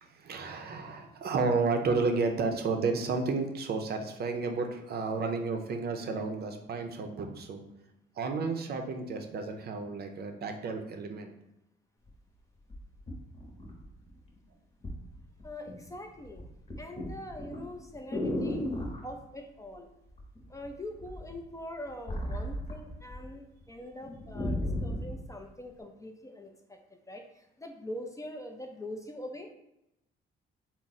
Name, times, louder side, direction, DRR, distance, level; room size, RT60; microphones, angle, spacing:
voice 1, 0.0-7.6 8.2-11.3, right 4 dB, 55° right, 5 dB, 0.5 m, -32 dB
sound 1, 12.1-12.2 12.7-14.2 14.8-15.0 15.4-15.9 16.2-19.0 20.2-20.7 21.0-23.3 23.6-23.7 24.0-25.1 25.8-25.9, left 1 dB, 35° left, 0.9 m, -35 dB
voice 2, 15.4-16.4 16.8-18.6 19.0-19.9 20.5-26.8 27.1-29.5, left 1 dB, 15° left, 4 dB, 0.4 m, -43 dB
3.5 x 2.0 x 4.0 m, 0.88 s
cardioid pair, 90°, 20 cm